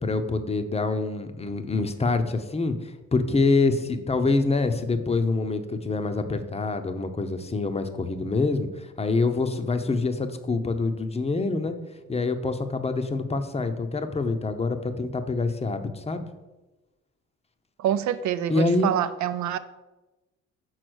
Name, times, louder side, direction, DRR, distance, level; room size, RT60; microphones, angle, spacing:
voice 1, 0.0-11.8 12.1-16.3 18.5-18.9, left 3 dB, 20° left, 0.7 m, -26 dB
voice 2, 17.8-19.6, right 10 dB, 70° right, 0.5 m, -26 dB
6.4 x 4.1 x 6.2 m
cardioid pair, 90°, 30 cm